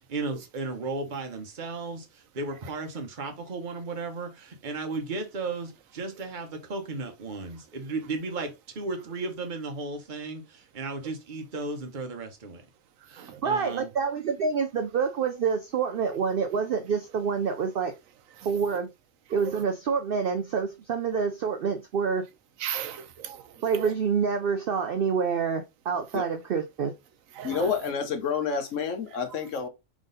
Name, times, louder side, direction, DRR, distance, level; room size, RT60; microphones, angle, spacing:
voice 1, 0.1-12.6 13.1-13.9, right 3 dB, 40° right, 1.1 m, -35 dB
voice 2, 13.4-17.9 18.5-18.9 19.3-22.2 23.6-26.9, right 6 dB, 60° right, 0.6 m, -27 dB
voice 3, 22.6-23.9 27.3-27.7, right 10 dB, 80° right, 1.1 m, -37 dB
voice 4, 27.4-29.7, left 6 dB, 65° left, 1.2 m, -29 dB
3.7 x 3.6 x 3.8 m
omnidirectional pair, 1.4 m